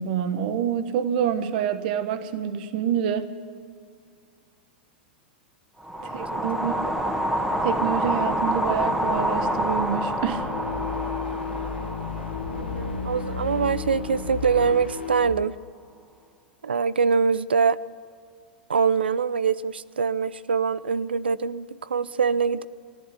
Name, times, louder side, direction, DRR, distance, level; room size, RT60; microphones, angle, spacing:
voice 1, 0.0-3.3 6.0-6.8 7.6-10.5, right 9 dB, 60° right, 11 dB, 1.1 m, -27 dB
sound 1, 5.8-14.1, equal, ahead, 1.7 m, -28 dB
voice 2, 6.0-6.9 12.5-15.5 16.6-17.8 18.7-22.6, right 5 dB, 90° right, 17 dB, 0.5 m, -24 dB
sound 2, 10.1-15.4, left 5 dB, 85° left, 1.6 m, -32 dB
16.0 x 11.0 x 8.3 m, 2.1 s
hypercardioid pair, 105°, 5 cm